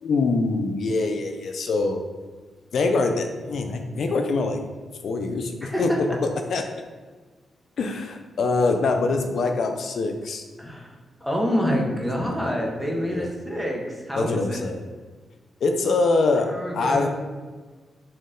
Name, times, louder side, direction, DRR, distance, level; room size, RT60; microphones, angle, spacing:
voice 1, 0.0-2.0 2.7-4.6 5.0-6.7 7.8-10.4 12.2-12.5 13.1-13.3 14.2-14.8 15.6-17.1, left 3 dB, 70° left, 5 dB, 0.5 m, -24 dB
voice 2, 5.6-6.0 10.6-10.9 11.2-14.6 16.5-17.1, equal, ahead, -2 dB, 1.2 m, -27 dB
4.4 x 3.1 x 3.7 m, 1.4 s
cardioid pair, 60°, 0 cm